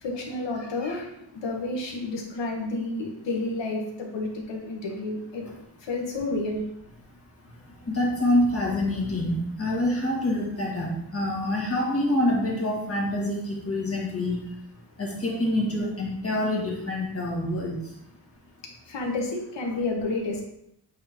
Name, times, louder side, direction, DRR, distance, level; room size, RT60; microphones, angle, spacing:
voice 1, 0.0-1.1 1.4-5.4 5.8-6.6 18.8-20.4, left 2 dB, 85° left, 1 dB, 1.5 m, -30 dB
voice 2, 7.9-14.4 15.0-17.8, left 1 dB, 35° left, -3 dB, 1.8 m, -26 dB
8.3 x 3.8 x 3.1 m, 0.76 s
wide cardioid pair, 135°, 42 cm